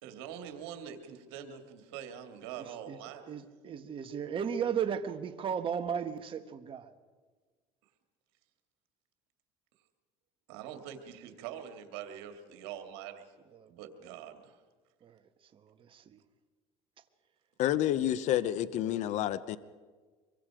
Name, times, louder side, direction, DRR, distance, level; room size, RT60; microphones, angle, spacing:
voice 1, 0.0-3.3 10.5-13.3 13.7-14.6, right 9 dB, 85° right, 2.6 m, -44 dB
voice 2, 2.6-3.0 3.3-6.9 13.5-13.7 15.0-15.2 15.5-16.2, right 7 dB, 40° right, 1.6 m, -35 dB
voice 3, 17.6-19.6, left 12 dB, 65° left, 0.9 m, -29 dB
25.5 x 23.0 x 5.1 m
supercardioid pair, 100°, 13 cm